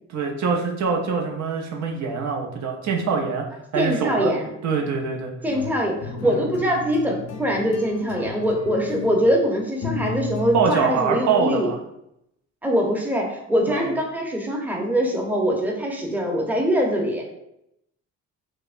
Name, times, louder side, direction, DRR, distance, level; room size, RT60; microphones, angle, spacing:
voice 1, 0.1-3.4 3.7-4.3 4.6-5.3 6.2-6.4 10.5-11.8 13.7-13.9, right 5 dB, 65° right, 1 dB, 0.7 m, -24 dB
voice 2, 3.7-4.5 5.4-11.7 12.6-17.2, equal, 5° right, 0 dB, 0.7 m, -23 dB
sound 1, 5.5-11.1, left 3 dB, 60° left, 0.6 m, -34 dB
4.6 x 2.1 x 2.5 m, 0.79 s
cardioid pair, 90°, 30 cm